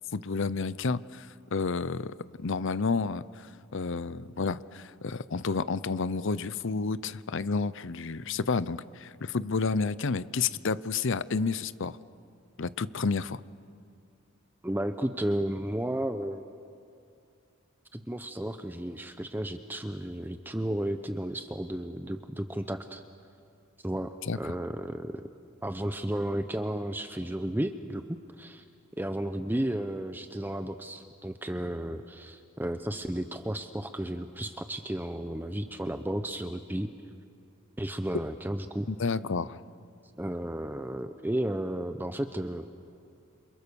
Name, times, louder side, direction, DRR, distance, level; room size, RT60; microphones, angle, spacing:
voice 1, 0.1-12.0 12.6-13.4 24.2-24.5 39.0-39.6, left 4 dB, 65° left, 16 dB, 0.7 m, -30 dB
voice 2, 14.6-16.5 17.9-23.0 23.8-25.3 25.6-28.6 29.0-36.9 37.8-38.9 40.2-42.7, right 1 dB, 10° right, 8 dB, 0.7 m, -33 dB
29.0 x 28.0 x 7.0 m, 2.4 s
head